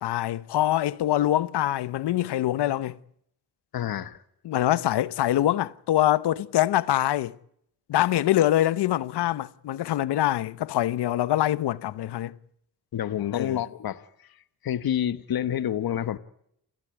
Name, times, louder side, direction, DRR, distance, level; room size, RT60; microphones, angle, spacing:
voice 1, 0.0-3.0 4.4-7.3 7.9-12.3 13.3-13.6, left 13 dB, 90° left, 0.9 m, -24 dB
voice 2, 3.7-4.2 12.9-14.0 14.6-16.2, left 10 dB, 65° left, 1.2 m, -28 dB
29.0 x 13.5 x 9.6 m
cardioid pair, 95°, 39 cm